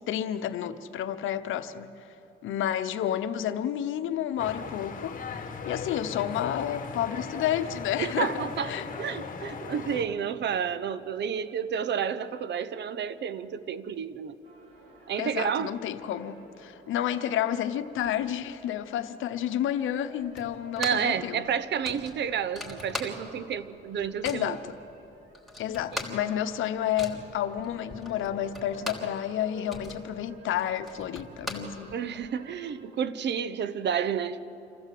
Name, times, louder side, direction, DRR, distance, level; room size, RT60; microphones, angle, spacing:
voice 1, 0.1-1.9 2.4-8.3 8.7-8.9 15.2-21.4 24.2-24.6 25.6-32.0, left 10 dB, 80° left, 0.9 m, -30 dB
sound 1, 4.4-10.0, left 5 dB, 45° left, 1.9 m, -38 dB
voice 2, 8.0-14.4 15.1-15.8 20.8-24.6 31.9-34.4, right 7 dB, 60° right, 0.9 m, -30 dB
sound 2, 14.4-32.7, right 1 dB, 90° right, 3.5 m, -52 dB
sound 3, 20.3-21.2 21.4-21.5 21.8-23.5 23.8-24.5 25.0-25.1 25.3-29.2 29.5-32.3, left 1 dB, ahead, 3.5 m, -40 dB
27.0 x 15.0 x 7.7 m
cardioid pair, 90°, 20 cm